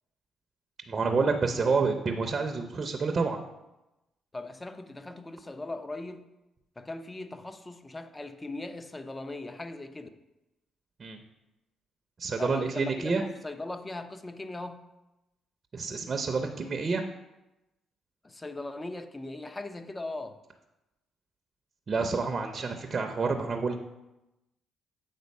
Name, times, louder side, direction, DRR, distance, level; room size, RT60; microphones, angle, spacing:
voice 1, 0.9-3.4 11.0-11.2 12.2-13.2 15.7-17.0 21.9-23.8, right 4 dB, 40° right, 0.7 m, -28 dB
voice 2, 4.3-6.3 6.8-10.1 12.4-14.9 18.2-20.4, left 2 dB, 20° left, 0.6 m, -39 dB
8.2 x 3.9 x 5.3 m
cardioid pair, 90°, 0 cm